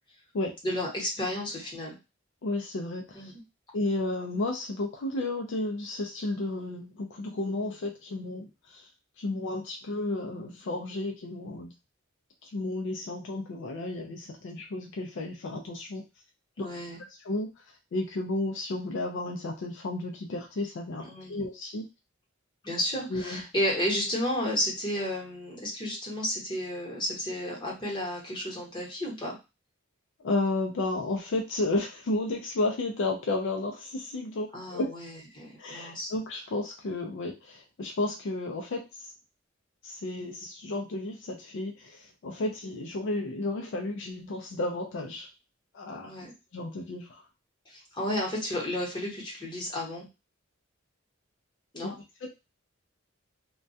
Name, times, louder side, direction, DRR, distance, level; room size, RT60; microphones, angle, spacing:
voice 1, 0.6-1.9 3.1-3.4 16.6-17.0 21.0-21.4 22.6-29.3 34.5-36.1 46.0-46.3 47.7-50.1 51.7-51.9, left 1 dB, 25° left, -4 dB, 1.0 m, -32 dB
voice 2, 2.4-3.3 3.7-8.9 9.2-11.7 12.4-16.0 16.6-16.7 17.2-21.0 21.3-21.9 23.1-23.4 30.2-34.9 35.6-39.1 39.8-45.3 45.7-46.1 46.5-47.3 51.8-52.3, left 2 dB, 65° left, 2 dB, 0.4 m, -32 dB
2.2 x 2.2 x 2.6 m, 0.26 s
head